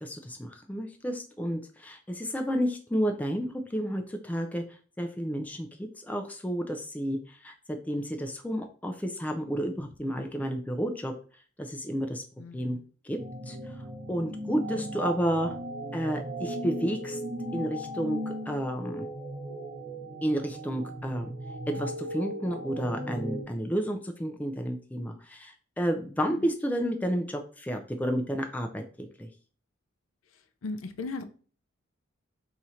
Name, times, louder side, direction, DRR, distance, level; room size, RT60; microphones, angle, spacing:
voice 1, 0.0-4.6 5.0-11.1 11.6-12.2 12.5-12.8 13.0-13.2 13.5-13.6 14.1-15.5 15.9-17.2 17.5-19.1 20.2-21.3 21.7-29.3, equal, 10° left, 0.3 m, -31 dB
voice 2, 12.4-12.8 30.6-31.2, left 3 dB, 85° left, 0.5 m, -36 dB
sound 1, 13.2-23.4, right 1 dB, 35° right, 0.6 m, -37 dB
2.8 x 2.5 x 4.2 m
head